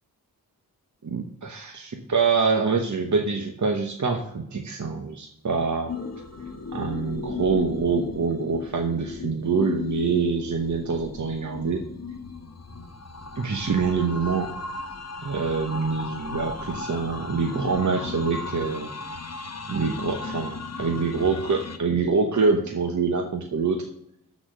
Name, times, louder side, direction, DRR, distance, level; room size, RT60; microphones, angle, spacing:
voice 1, 1.0-5.9 6.7-11.8 13.4-14.5 15.2-18.9 19.7-23.9, right 4 dB, 50° right, 3 dB, 1.1 m, -25 dB
sound 1, 5.9-21.8, left 4 dB, 45° left, 1.1 m, -36 dB
12.0 x 4.2 x 6.6 m, 0.75 s
cardioid pair, 40°, 36 cm